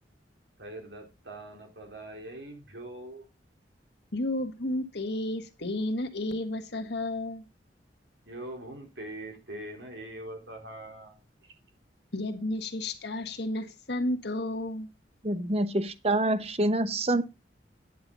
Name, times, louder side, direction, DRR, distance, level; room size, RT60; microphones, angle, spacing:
voice 1, 0.6-3.2 8.3-11.2 11.4-11.5, right 1 dB, 75° right, 4.2 m, -42 dB
voice 2, 4.1-7.4 12.1-14.9, left 1 dB, 65° left, 1.6 m, -32 dB
voice 3, 15.2-17.2, right 1 dB, 35° right, 0.9 m, -26 dB
10.0 x 7.8 x 4.1 m
head